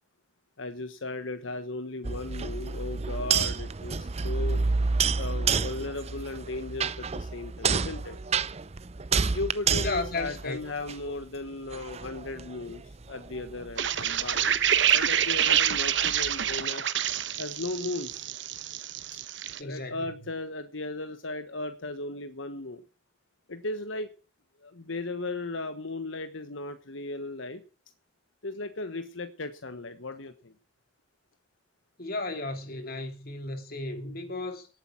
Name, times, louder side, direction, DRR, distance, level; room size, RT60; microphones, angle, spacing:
voice 1, 0.6-4.6 5.2-8.2 9.3-14.5 14.9-16.9 17.4-18.2 19.6-22.8 23.5-24.1 24.6-27.6 28.4-30.5, left 2 dB, 85° left, 1.4 m, -36 dB
sound 1, 2.0-11.2 11.7-16.6, right 5 dB, 35° right, 0.6 m, -30 dB
voice 2, 9.7-10.6 19.6-20.1 32.0-34.7, left 2 dB, 50° left, 3.0 m, -34 dB
sound 2, 13.8-19.6, right 9 dB, 65° right, 1.0 m, -27 dB
18.0 x 9.1 x 6.0 m
head